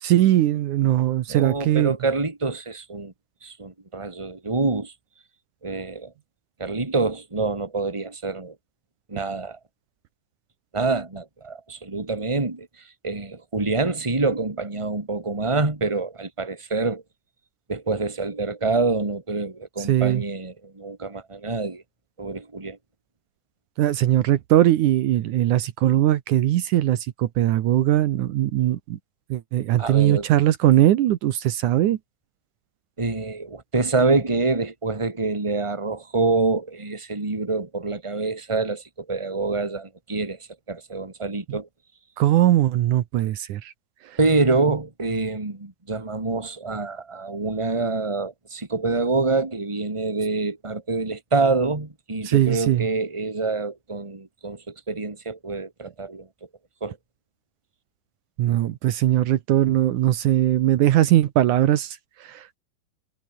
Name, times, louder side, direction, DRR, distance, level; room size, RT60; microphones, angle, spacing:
voice 1, 0.0-2.0 19.8-20.2 23.8-29.0 29.3-32.0 41.5-41.6 42.2-43.7 52.2-52.9 58.4-62.6, right 13 dB, 75° right, 2.5 m, -20 dB
voice 2, 1.3-3.1 3.4-4.9 5.6-6.1 6.6-8.5 9.1-9.6 10.7-17.0 17.7-21.8 22.2-22.8 29.8-30.3 33.0-40.4 40.7-41.7 44.2-56.3 56.8-57.0, right 3 dB, 10° right, 2.6 m, -26 dB
omnidirectional pair, 3.7 m